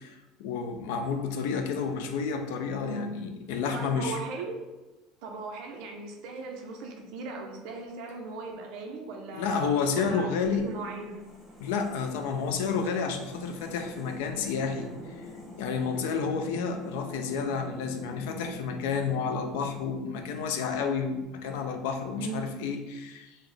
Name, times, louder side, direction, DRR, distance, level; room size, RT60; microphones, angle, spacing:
voice 1, 0.0-4.2 9.3-10.7 11.6-15.3 15.6-23.4, left 5 dB, 85° left, 6 dB, 0.4 m, -30 dB
voice 2, 2.8-3.2 3.7-4.6 5.2-11.3 22.2-22.5, right 3 dB, 55° right, 2 dB, 0.6 m, -38 dB
sound 1, 10.4-21.5, left 1 dB, 5° left, 1.1 m, -45 dB
3.8 x 2.0 x 3.3 m, 1.1 s
cardioid pair, 170°, 0 cm